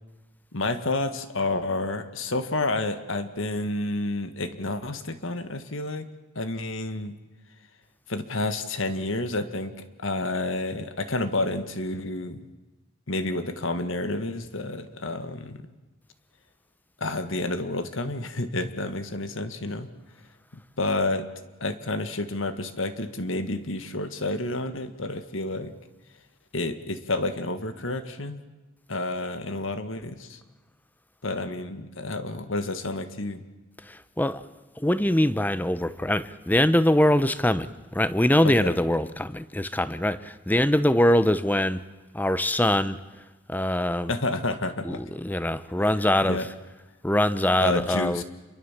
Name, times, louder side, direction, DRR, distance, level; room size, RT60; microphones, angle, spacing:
voice 1, 0.5-6.1 6.4-7.2 8.1-12.4 13.1-15.6 17.0-19.9 20.8-21.3 21.6-25.7 26.5-28.4 28.9-30.4 31.2-33.4 38.4-38.7 44.1-45.0 46.2-46.5 47.6-48.2, left 2 dB, 60° left, 1.7 m, -30 dB
voice 2, 33.8-34.4 34.8-41.8 42.1-43.0 43.5-44.1 44.8-46.5 47.0-48.2, left 1 dB, 10° left, 0.8 m, -23 dB
28.0 x 23.0 x 7.4 m
head